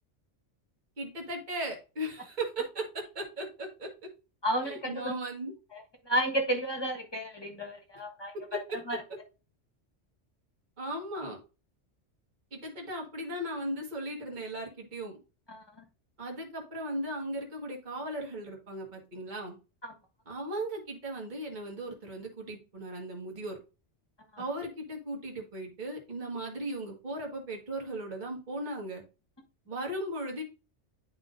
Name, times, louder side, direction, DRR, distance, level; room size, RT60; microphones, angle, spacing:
voice 1, 1.0-3.9 4.6-5.5 8.5-8.6 8.9-9.0 10.8-11.4 12.5-15.1 16.2-19.6 20.3-23.6 24.4-29.0 29.7-30.4, right 1 dB, 40° right, -1 dB, 1.8 m, -37 dB
voice 2, 4.4-5.1 6.1-8.3 8.9-9.0 15.5-15.6 19.8-19.9 24.3-24.4, right 1 dB, 20° left, 2 dB, 1.3 m, -31 dB
11.0 x 3.9 x 2.6 m, 0.32 s
omnidirectional pair, 1.2 m